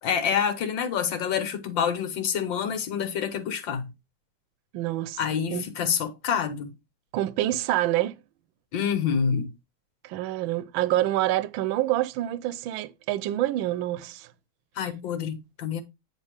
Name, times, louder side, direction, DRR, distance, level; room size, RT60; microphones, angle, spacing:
voice 1, 0.0-3.9 5.2-6.7 8.7-9.5 14.8-15.8, left 7 dB, 70° left, 1.9 m, -27 dB
voice 2, 4.7-5.2 5.5-5.7 7.1-8.2 10.0-14.3, right 14 dB, 80° right, 1.4 m, -27 dB
9.1 x 3.4 x 4.9 m
omnidirectional pair, 2.2 m